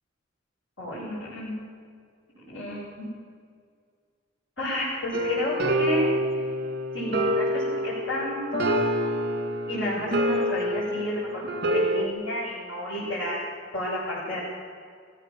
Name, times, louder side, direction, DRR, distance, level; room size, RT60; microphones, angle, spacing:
voice 1, 0.8-1.5 2.4-3.1 4.6-6.1 6.9-8.8 9.7-11.4 11.7-14.4, left 1 dB, 90° left, -9 dB, 7.8 m, -31 dB
sound 1, 5.1-12.1, equal, 50° right, 2.4 m, -27 dB
22.0 x 16.5 x 7.8 m, 2.1 s
head